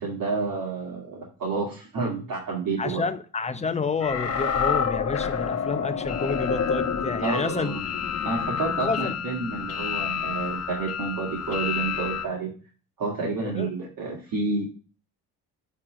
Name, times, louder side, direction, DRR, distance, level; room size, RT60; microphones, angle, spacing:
voice 1, 0.0-3.0 7.2-7.8 8.2-12.5 13.0-14.6, right 4 dB, 55° right, 2.1 m, -29 dB
voice 2, 2.8-7.7 8.8-9.1 13.4-13.7, left 4 dB, 15° left, 0.6 m, -29 dB
sound 1, 4.0-12.3, left 7 dB, 40° left, 1.1 m, -28 dB
7.7 x 3.3 x 6.2 m
cardioid pair, 95°, 40 cm